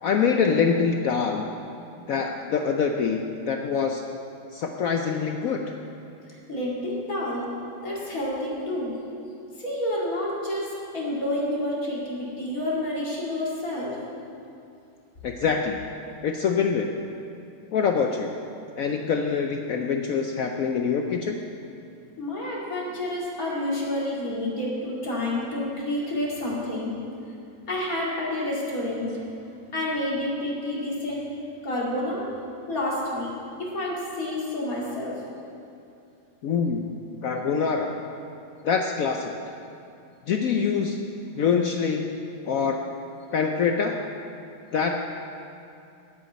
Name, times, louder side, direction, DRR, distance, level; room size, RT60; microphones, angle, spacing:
voice 1, 0.0-1.5 2.1-4.0 4.5-5.6 15.2-15.8 16.2-16.9 17.7-18.3 18.8-21.4 36.4-36.9 37.2-38.0 38.6-39.3 40.3-41.0 41.4-42.2 42.5-42.8 43.3-44.0 44.7-44.9, left 6 dB, 70° left, 3 dB, 0.8 m, -24 dB
voice 2, 6.3-7.5 7.8-9.0 9.5-14.0 22.2-26.9 27.7-29.2 29.7-31.2 31.6-32.3 32.7-33.3 33.6-35.2, left 1 dB, 50° left, -5 dB, 2.7 m, -29 dB
8.3 x 8.2 x 9.2 m, 2.6 s
omnidirectional pair, 2.0 m